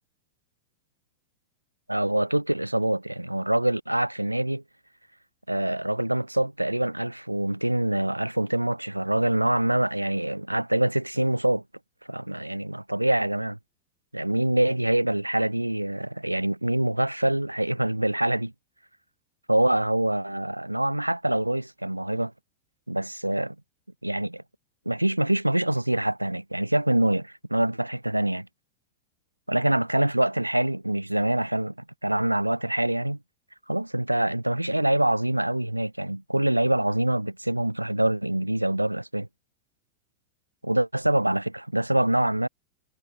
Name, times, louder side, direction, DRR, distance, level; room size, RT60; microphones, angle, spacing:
voice 1, 1.9-4.6 5.5-11.6 12.1-13.6 14.1-18.5 19.5-22.3 22.9-23.6 24.0-24.4 24.9-28.5 29.5-31.7 32.0-33.2 33.7-39.3 40.6-42.5, right 1 dB, 85° right, 3.7 m, -25 dB
figure-of-eight pair, 90°, 0 cm